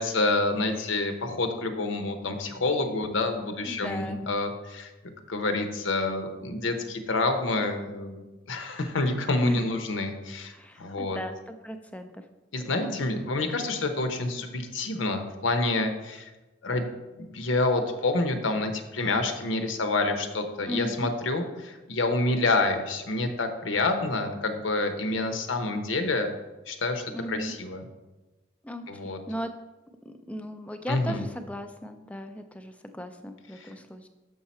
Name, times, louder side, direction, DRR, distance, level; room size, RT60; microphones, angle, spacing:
voice 1, 0.0-4.9 5.3-8.2 8.5-10.5 10.8-11.2 12.5-16.3 16.6-16.9 17.2-26.3 26.7-27.8 28.9-29.2 30.9-31.2 33.6-33.7, left 2 dB, 90° left, 7 dB, 0.8 m, -28 dB
voice 2, 3.5-4.2 9.4-9.7 10.5-12.2 12.6-13.0 20.7-21.1 27.1-27.5 28.6-29.5 30.1-34.1, equal, 5° left, 7 dB, 0.4 m, -37 dB
6.6 x 5.6 x 4.2 m, 1.1 s
head